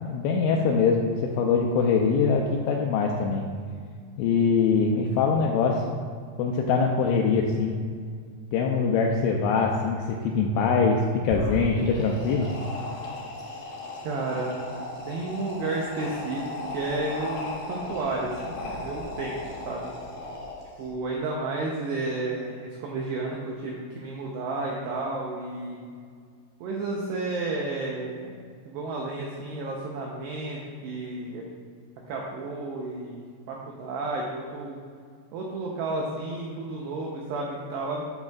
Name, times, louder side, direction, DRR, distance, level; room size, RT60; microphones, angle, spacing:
voice 1, 0.0-3.5 4.2-5.9 6.4-7.8 8.5-12.5, left 5 dB, 85° left, 0 dB, 2.8 m, -23 dB
sound 1, 11.2-20.9, left 2 dB, 65° left, 2.4 m, -36 dB
voice 2, 14.0-14.6 15.1-19.9 20.8-25.8 26.6-28.3 28.7-31.4 32.1-34.8 35.3-38.0, right 2 dB, 90° right, -2 dB, 2.4 m, -32 dB
9.5 x 8.8 x 2.4 m, 2.1 s
omnidirectional pair, 6.0 m